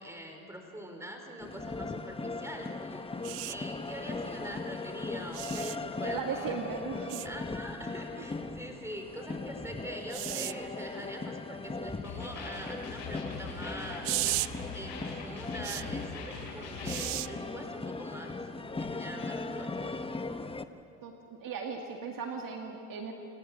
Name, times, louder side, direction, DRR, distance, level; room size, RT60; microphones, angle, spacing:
voice 1, 0.0-6.5 7.2-14.2 14.7-18.5 18.8-20.0, equal, 5° right, 3 dB, 4.9 m, -44 dB
sound 1, 1.4-20.7, left 3 dB, 10° left, 1.0 m, -39 dB
sound 2, 3.2-3.6 5.3-5.8 7.1-7.3 10.1-10.5 14.0-14.5 15.6-15.8 16.9-17.3 18.8-18.9, right 22 dB, 65° right, 0.7 m, -34 dB
voice 2, 6.0-7.2 8.1-8.2 21.0-23.1, right 5 dB, 45° right, 2 dB, 2.2 m, -37 dB
sound 3, 12.0-17.1, left 4 dB, 70° left, 7.8 m, -42 dB
28.5 x 18.5 x 7.0 m, 2.7 s
supercardioid pair, 80°, 45 cm